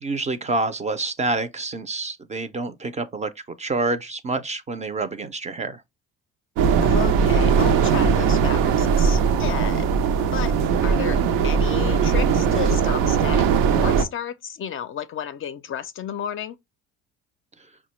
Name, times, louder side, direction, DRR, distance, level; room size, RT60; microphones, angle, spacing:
voice 1, 0.0-3.3 3.6-5.8, right 3 dB, 20° right, 0.4 m, -27 dB
sound 1, 6.6-14.0, right 6 dB, 85° right, 0.6 m, -19 dB
voice 2, 6.8-9.9 10.3-10.5 10.8-16.6, left 9 dB, 40° left, 0.4 m, -32 dB
4.8 x 2.2 x 3.0 m
cardioid pair, 100°, 32 cm